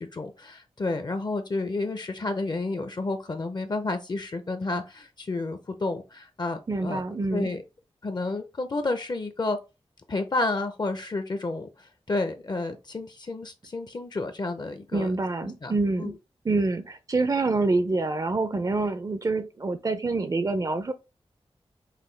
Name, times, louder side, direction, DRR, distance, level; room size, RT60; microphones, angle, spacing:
voice 1, 0.0-7.0 7.3-7.6 8.0-9.6 10.1-15.1 15.4-15.7 16.0-16.1, left 2 dB, 45° left, 0.6 m, -30 dB
voice 2, 6.7-7.5 14.9-16.2 16.4-20.9, right 3 dB, 35° right, 0.4 m, -26 dB
5.7 x 2.2 x 3.2 m
wide cardioid pair, 105°, 10 cm